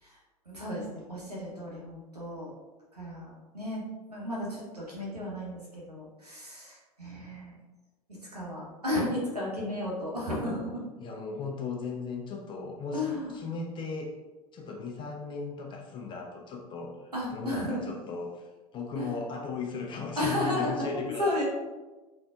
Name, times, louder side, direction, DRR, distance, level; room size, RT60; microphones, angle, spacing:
voice 1, 0.5-2.5 2.9-3.8 4.1-7.6 8.1-10.8 12.9-13.3 17.1-17.9 18.9-19.1 20.2-21.4, left 1 dB, 90° right, -5 dB, 0.8 m, -33 dB
voice 2, 11.0-14.1 14.5-21.4, left 4 dB, 25° left, 0 dB, 0.5 m, -37 dB
3.5 x 2.5 x 2.3 m, 1.2 s
figure-of-eight pair, 80°, 20 cm